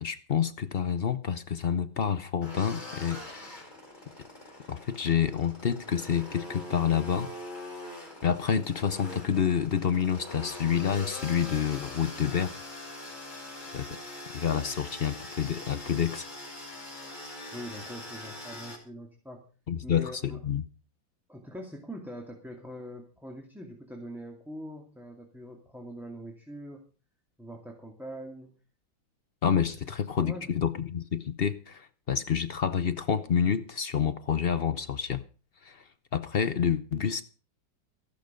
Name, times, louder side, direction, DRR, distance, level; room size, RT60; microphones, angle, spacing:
voice 1, 0.0-3.7 4.7-7.3 8.2-12.6 13.7-14.0 14.3-16.3 19.7-20.6 29.4-35.2 35.6-35.8 36.1-37.2, left 7 dB, 55° left, 0.6 m, -28 dB
sound 1, 2.4-18.8, left 1 dB, 20° left, 4.6 m, -43 dB
voice 2, 17.5-19.4 19.8-20.4 21.3-26.8 27.4-28.5 30.2-30.5, equal, ahead, 2.4 m, -43 dB
14.5 x 12.0 x 5.3 m
omnidirectional pair, 2.1 m